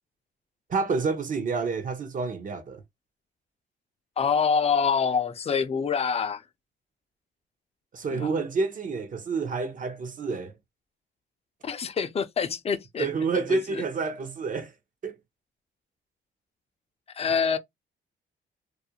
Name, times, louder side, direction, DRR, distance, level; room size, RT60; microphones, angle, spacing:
voice 1, 0.7-2.8 7.9-10.6 13.0-14.7 15.0-15.1, right 4 dB, 40° right, 0.7 m, -29 dB
voice 2, 4.2-6.4 8.1-8.3 11.6-13.1 13.5-13.8 17.1-17.6, left 6 dB, 30° left, 0.4 m, -26 dB
2.4 x 2.1 x 2.8 m
cardioid pair, 90°, 20 cm